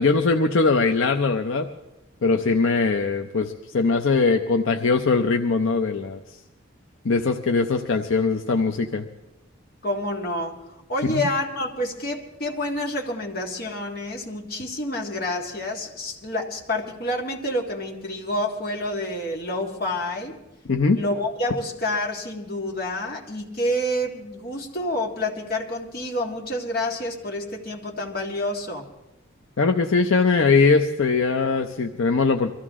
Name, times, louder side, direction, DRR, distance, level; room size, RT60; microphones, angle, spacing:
voice 1, 0.0-1.7 2.2-6.2 7.0-9.1 11.1-11.2 20.7-21.0 29.6-32.5, left 4 dB, 75° left, 5 dB, 0.7 m, -21 dB
voice 2, 9.8-10.6 10.9-20.4 20.9-28.9, left 1 dB, 45° left, 0 dB, 1.9 m, -28 dB
23.5 x 14.5 x 3.7 m, 0.94 s
head